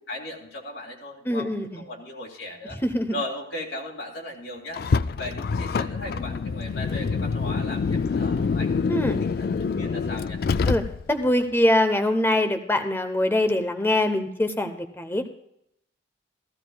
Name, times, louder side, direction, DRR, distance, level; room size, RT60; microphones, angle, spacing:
voice 1, 0.1-2.8 3.1-4.8 5.2-8.9 9.2-10.4, left 1 dB, 75° left, -2 dB, 2.4 m, -37 dB
voice 2, 1.3-1.8 2.8-3.1 8.9-9.2 10.7-10.8 11.1-15.3, left 1 dB, 10° left, 8 dB, 0.8 m, -23 dB
Car, 4.7-11.3, left 5 dB, 55° left, 0.3 m, -26 dB
15.5 x 14.5 x 2.3 m, 0.77 s
head